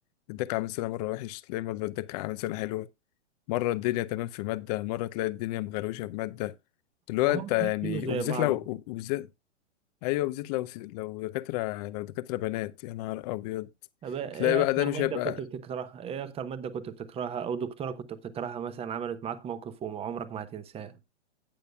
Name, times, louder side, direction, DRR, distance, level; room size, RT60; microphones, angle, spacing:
voice 1, 0.3-2.9 3.5-6.5 7.1-9.3 10.0-13.7 14.4-15.4, left 18 dB, 35° left, 0.6 m, -30 dB
voice 2, 7.3-8.5 14.0-21.0, right 7 dB, 15° right, 0.9 m, -35 dB
17.5 x 6.7 x 2.3 m
hypercardioid pair, 125°, 36 cm